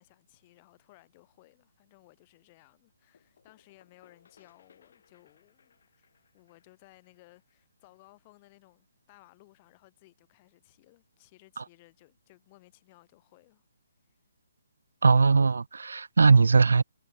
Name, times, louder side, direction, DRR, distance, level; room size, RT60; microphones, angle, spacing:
voice 1, 0.0-6.1 6.3-13.6 14.0-14.2, left 21 dB, 20° left, 2.1 m, -60 dB
sound 1, 3.1-8.7, left 7 dB, 50° left, 7.8 m, -65 dB
voice 2, 15.0-16.8, right 4 dB, 85° right, 0.4 m, -20 dB
hypercardioid pair, 175°, 0 cm